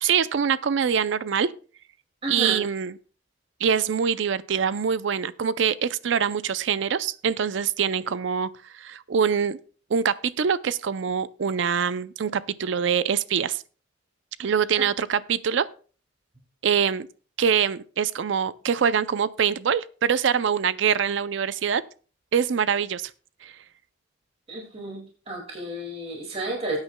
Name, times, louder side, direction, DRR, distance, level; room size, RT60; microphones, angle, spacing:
voice 1, 0.0-1.5 2.3-3.0 3.6-9.6 9.9-13.6 14.4-15.7 16.6-17.1 17.4-21.8 22.3-23.1 23.4-23.5, right 7 dB, 70° right, 0.4 m, -24 dB
voice 2, 2.2-2.6 24.5-26.8, right 2 dB, 30° right, 2.2 m, -31 dB
19.0 x 8.9 x 2.2 m
head